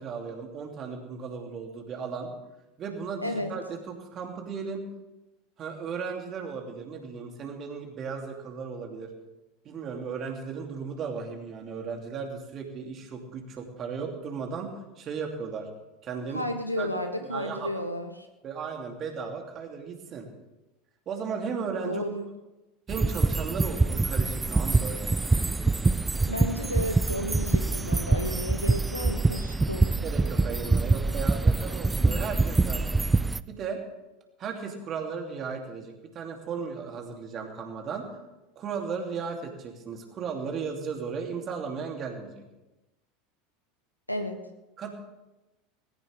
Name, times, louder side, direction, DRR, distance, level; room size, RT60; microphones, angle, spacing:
voice 1, 0.0-2.3 2.8-4.8 5.6-9.1 9.6-15.7 16.0-16.5 16.8-16.9 17.2-17.7 18.4-20.3 21.1-22.0 22.9-25.1 29.8-33.0 33.5-33.8 34.4-38.2 38.5-42.4 44.8-44.9, right 5 dB, 35° right, 2 dB, 3.1 m, -36 dB
voice 2, 16.3-18.3 21.8-22.3 26.3-29.8 44.1-44.4, equal, 90° left, 5 dB, 1.5 m, -32 dB
sound 1, 22.9-33.4, right 3 dB, 10° right, 0.5 m, -25 dB
19.5 x 17.0 x 3.6 m, 1.0 s
figure-of-eight pair, 80°, 0 cm